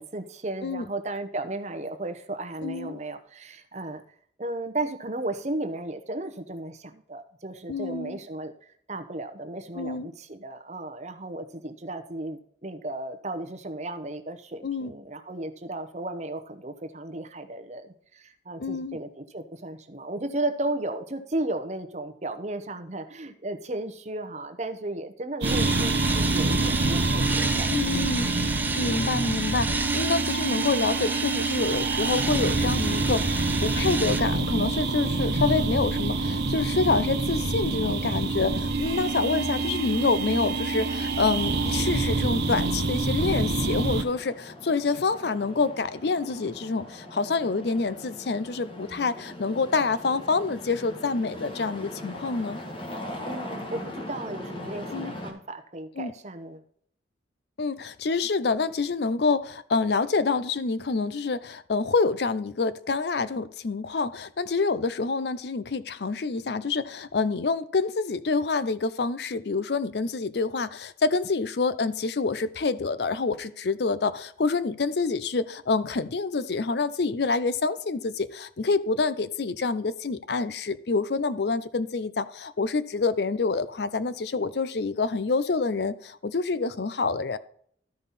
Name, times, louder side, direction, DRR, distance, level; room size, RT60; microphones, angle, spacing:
voice 1, 0.0-4.0 4.4-28.3 28.8-29.0 53.2-56.6, right 2 dB, 40° right, 8 dB, 0.9 m, -35 dB
voice 2, 2.6-3.0 7.7-8.2 9.8-10.1 14.6-14.9 18.6-19.0 27.7-28.3 28.7-52.6 54.9-55.1 56.0-56.1 57.6-87.4, left 4 dB, 65° left, 15 dB, 0.5 m, -27 dB
sound 1, 25.4-34.2, right 3 dB, 10° right, 0.5 m, -31 dB
sound 2, 25.4-44.0, right 3 dB, 65° right, 1.0 m, -26 dB
sound 3, 41.3-55.3, left 1 dB, 30° left, 1.5 m, -41 dB
13.0 x 5.4 x 4.1 m, 0.63 s
head